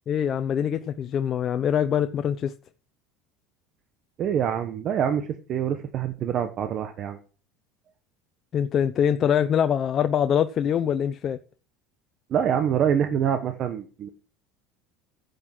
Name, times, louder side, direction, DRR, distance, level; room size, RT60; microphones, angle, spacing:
voice 1, 0.1-2.5 8.5-11.4, left 8 dB, 40° left, 0.8 m, -24 dB
voice 2, 4.2-7.2 12.3-14.1, right 8 dB, 45° right, 1.2 m, -25 dB
11.0 x 8.1 x 6.1 m
supercardioid pair, 105°, 0 cm